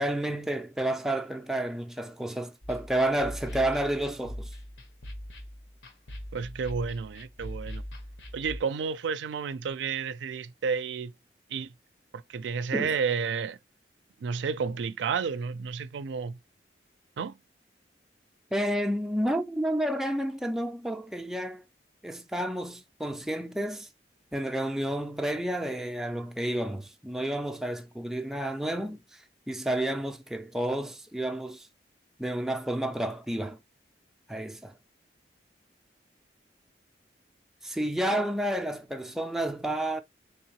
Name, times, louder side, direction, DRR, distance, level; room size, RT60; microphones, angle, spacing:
voice 1, 0.0-4.5 12.7-12.9 18.5-21.6 22.0-23.9 24.3-31.7 32.2-33.6 34.3-34.7 37.6-40.0, right 1 dB, ahead, 0.3 m, -30 dB
sound 1, 2.6-8.6, equal, 90° left, 1.0 m, -41 dB
voice 2, 6.3-7.8 8.3-11.1 11.5-11.7 12.1-13.6 14.2-16.4 17.2-17.4, right 5 dB, 85° right, 0.4 m, -31 dB
3.6 x 3.4 x 2.9 m
head